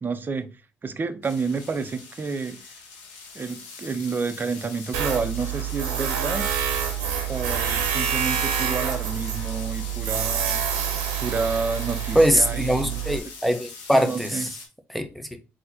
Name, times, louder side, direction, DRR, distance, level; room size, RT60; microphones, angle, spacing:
voice 1, 0.0-0.5 0.8-2.6 3.3-6.4 7.3-10.6 11.2-13.0 13.9-14.5, right 4 dB, 35° right, 0.7 m, -29 dB
sound 1, 1.2-14.7, left 4 dB, 90° left, 1.0 m, -42 dB
Tools, 4.9-13.2, right 8 dB, 90° right, 0.8 m, -27 dB
voice 2, 12.1-14.5 14.9-15.3, equal, ahead, 0.9 m, -22 dB
3.9 x 2.9 x 4.0 m
supercardioid pair, 55°, 6 cm